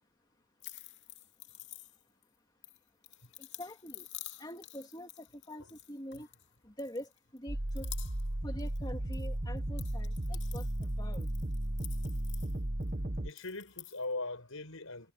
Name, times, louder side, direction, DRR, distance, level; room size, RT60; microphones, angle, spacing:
sound 1, 0.6-2.2 2.6-6.5 6.8-7.4 7.7-8.3 8.6-9.3 9.6-12.9 13.3-14.0, left 14 dB, 55° left, 2.7 m, -50 dB
voice 1, 3.4-4.1 4.4-6.3 6.6-7.9 8.4-11.3, equal, 20° left, 2.9 m, -45 dB
sound 2, 7.5-13.3, right 1 dB, 40° right, 1.4 m, -35 dB
voice 2, 13.2-15.1, left 2 dB, 75° left, 5.9 m, -40 dB
head